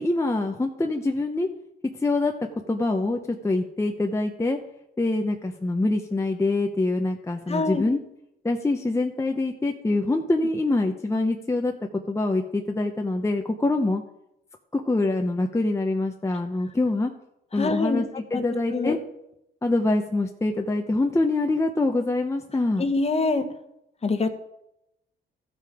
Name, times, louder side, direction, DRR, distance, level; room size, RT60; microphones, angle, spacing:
voice 1, 0.0-1.5 2.0-2.3 2.7-4.6 5.0-8.0 8.4-14.0 14.7-17.1 17.5-19.0 19.6-22.9, left 2 dB, 15° left, 3 dB, 0.8 m, -25 dB
voice 2, 7.5-7.8 17.6-18.0 18.3-18.4 18.7-19.0 22.8-23.4 24.0-24.3, left 3 dB, 30° left, 7 dB, 1.3 m, -24 dB
14.0 x 5.7 x 4.9 m, 0.81 s
cardioid pair, 90°, 20 cm